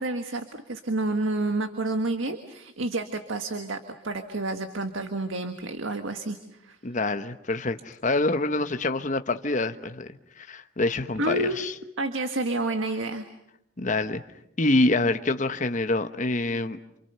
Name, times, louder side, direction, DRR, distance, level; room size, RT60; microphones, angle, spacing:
voice 1, 0.0-3.8 4.0-6.8 11.2-11.6 12.0-13.2, right 2 dB, 80° right, 7 dB, 1.7 m, -29 dB
voice 2, 6.8-11.7 13.8-14.2 14.6-16.8, left 2 dB, 40° left, 8 dB, 1.1 m, -26 dB
28.5 x 28.0 x 6.8 m, 0.81 s
head